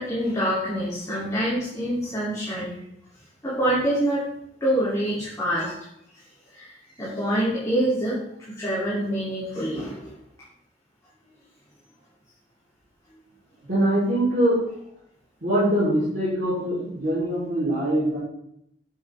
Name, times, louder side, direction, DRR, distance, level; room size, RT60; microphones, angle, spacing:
voice 1, 0.0-2.7 3.4-4.2 4.6-5.8 6.5-8.2 8.6-10.1, right 1 dB, 15° left, -10 dB, 3.5 m, -26 dB
voice 2, 13.7-14.6 15.4-18.2, right 1 dB, 45° right, -10 dB, 4.2 m, -23 dB
8.8 x 7.9 x 3.8 m, 0.74 s
head